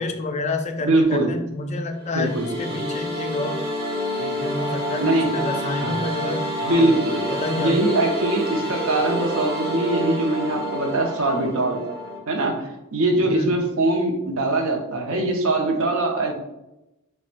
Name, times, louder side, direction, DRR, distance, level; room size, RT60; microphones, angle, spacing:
voice 1, 0.0-3.6 4.2-6.9 7.4-7.7 13.3-13.6, left 2 dB, 35° left, 5 dB, 0.3 m, -29 dB
voice 2, 0.8-1.3 2.1-2.8 5.0-5.3 5.8-6.0 6.7-7.2 7.6-11.8 12.3-16.3, right 2 dB, 70° right, 2 dB, 0.6 m, -22 dB
sound 1, 2.0-12.2, equal, 50° right, 1.0 m, -28 dB
4.3 x 2.1 x 2.5 m, 0.93 s
head